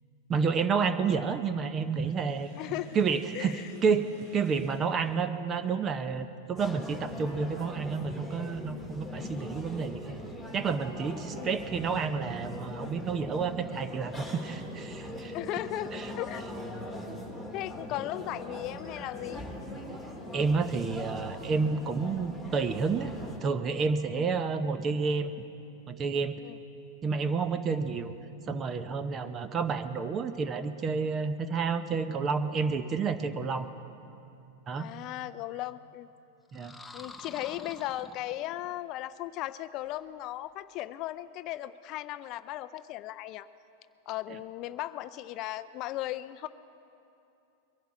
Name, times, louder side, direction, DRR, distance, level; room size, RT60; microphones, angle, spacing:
voice 1, 0.3-2.5 2.9-10.2 10.5-15.3 15.9-16.1 20.3-23.1 23.4-25.3 25.9-26.4 27.0-28.1 28.5-33.7 34.7-34.9 36.5-36.8, right 5 dB, 25° right, 11 dB, 0.8 m, -30 dB
Sink (filling or washing), 1.9-5.8, right 1 dB, 65° right, 4.8 m, -54 dB
voice 2, 2.6-3.0 3.3-3.8 11.4-11.5 15.3-16.5 17.5-19.4 24.1-24.3 26.4-26.6 29.2-29.4 34.8-36.1 36.9-43.5 44.1-46.5, left 15 dB, 45° left, 14 dB, 0.4 m, -37 dB
sound 1, 6.6-23.4, left 1 dB, 10° right, 2.1 m, -41 dB
sound 2, 36.5-38.8, left 3 dB, 10° left, 0.7 m, -47 dB
22.5 x 11.5 x 4.9 m, 2.7 s
hypercardioid pair, 130°, 0 cm